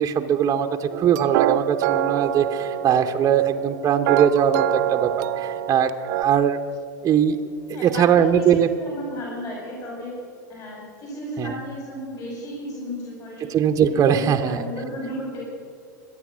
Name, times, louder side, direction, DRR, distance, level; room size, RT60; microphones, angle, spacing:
voice 1, 0.0-6.6 7.0-7.4 7.8-8.7 11.4-11.5 13.5-14.6, right 8 dB, 30° right, 5 dB, 0.9 m, -20 dB
sound 1, 0.9-6.2, right 12 dB, 60° right, 0.7 m, -25 dB
voice 2, 7.7-10.1 10.5-13.5 13.9-15.5, equal, 35° left, -4 dB, 5.4 m, -33 dB
24.5 x 8.9 x 6.3 m, 2.4 s
hypercardioid pair, 100°, 10 cm